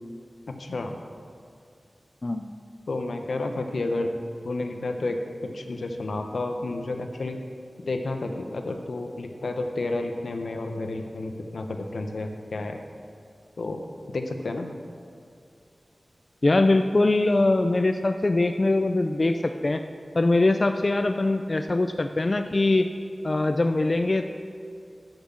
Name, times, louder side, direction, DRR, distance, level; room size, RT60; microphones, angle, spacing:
voice 1, 0.5-1.0 2.9-7.4 7.9-12.8 13.6-14.7, left 2 dB, 85° left, 5 dB, 0.9 m, -31 dB
voice 2, 2.2-2.5 16.4-19.8 20.1-22.9 23.2-24.2, left 2 dB, 45° left, 7 dB, 0.4 m, -22 dB
10.5 x 5.9 x 7.2 m, 2.3 s
wide cardioid pair, 70°, 0 cm